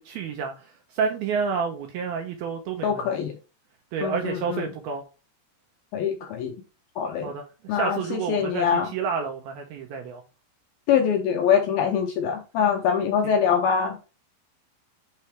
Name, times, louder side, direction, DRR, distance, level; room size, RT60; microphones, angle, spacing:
voice 1, 0.0-3.0 3.9-5.0 7.2-10.2 13.2-13.4, right 6 dB, 75° right, 2.3 m, -30 dB
voice 2, 2.8-3.3 4.0-4.6 5.9-6.6 7.0-7.3 7.7-8.9 10.9-14.0, left 7 dB, 75° left, 2.2 m, -24 dB
6.7 x 4.7 x 3.2 m
omnidirectional pair, 5.2 m